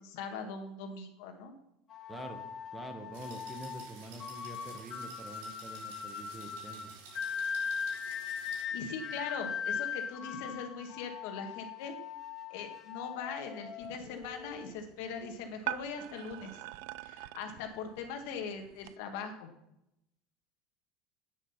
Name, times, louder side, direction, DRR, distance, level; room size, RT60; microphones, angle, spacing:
voice 1, 0.0-1.5 8.1-8.3 8.7-11.9 12.5-16.6 17.0-19.5, left 5 dB, 65° left, 5 dB, 1.9 m, -41 dB
sound 1, 1.9-14.7, left 7 dB, 25° left, 1.1 m, -40 dB
voice 2, 2.1-2.4 2.7-6.9, right 2 dB, 10° right, 7 dB, 1.0 m, -46 dB
sound 2, 3.1-8.6, right 5 dB, 85° right, 5.3 m, -53 dB
sound 3, 13.8-19.0, right 16 dB, 65° right, 0.4 m, -45 dB
9.9 x 9.8 x 5.7 m, 0.84 s
cardioid pair, 165°, 0 cm